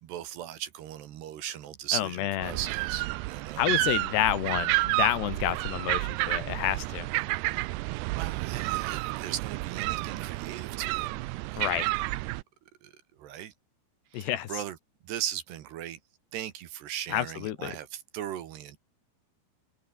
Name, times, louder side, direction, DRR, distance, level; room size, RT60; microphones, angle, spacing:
voice 1, 0.0-3.7 8.0-11.1 11.5-11.7 12.8-12.9 13.2-13.5 14.1-14.8 15.0-16.0 16.3-18.8, right 11 dB, 70° right, 3.5 m, -38 dB
voice 2, 1.9-2.6 3.6-7.1 11.6-11.9 14.1-14.5 17.1-17.7, left 12 dB, 70° left, 3.5 m, -29 dB
sound 1, 2.4-12.4, right 21 dB, 85° right, 2.5 m, -30 dB
omnidirectional pair, 5.4 m